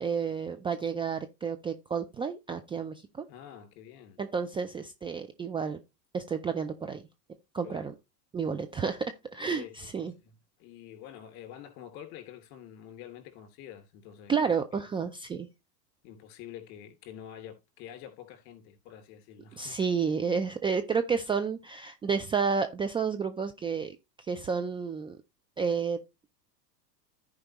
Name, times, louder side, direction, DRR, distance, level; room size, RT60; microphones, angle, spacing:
voice 1, 0.0-3.3 4.2-5.8 6.1-7.0 7.5-7.9 8.3-10.1 14.3-15.5 19.6-24.0 24.3-25.2 25.6-26.0, right 6 dB, 10° right, 0.4 m, -31 dB
voice 2, 3.3-4.2 7.6-7.9 9.5-14.5 16.0-19.8, left 10 dB, 50° left, 3.0 m, -47 dB
14.0 x 4.9 x 3.0 m
hypercardioid pair, 95°, 48 cm